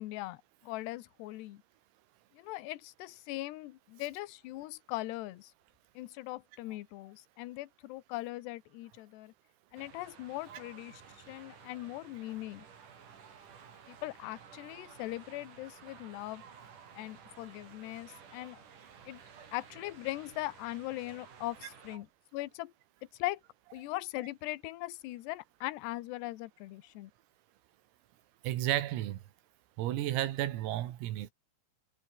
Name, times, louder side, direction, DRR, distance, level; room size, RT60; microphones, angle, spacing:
voice 1, 0.0-1.6 2.3-5.5 6.0-9.3 9.7-11.0 11.3-12.6 13.9-16.4 16.9-18.6 19.1-19.2 19.5-22.7 23.2-23.4 23.7-27.1, left 18 dB, 75° left, 2.7 m, -40 dB
sound 1, 9.8-22.0, right 7 dB, 45° right, 4.1 m, -54 dB
voice 2, 28.4-29.2 29.8-31.3, right 13 dB, 85° right, 4.6 m, -32 dB
omnidirectional pair, 6.0 m